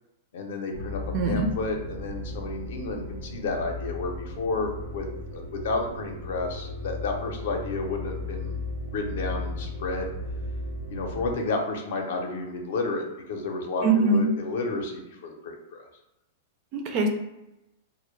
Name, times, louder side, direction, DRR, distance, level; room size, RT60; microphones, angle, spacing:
voice 1, 0.3-5.1 5.3-8.6 8.9-10.1 10.9-15.9, left 3 dB, 65° left, 3 dB, 0.5 m, -31 dB
sound 1, 0.7-11.3, left 1 dB, 85° right, 0.8 m, -36 dB
voice 2, 1.1-1.5 13.8-14.3 16.7-17.1, right 3 dB, 35° right, 3 dB, 0.4 m, -22 dB
2.0 x 2.0 x 3.1 m, 0.92 s
supercardioid pair, 150°, 0 cm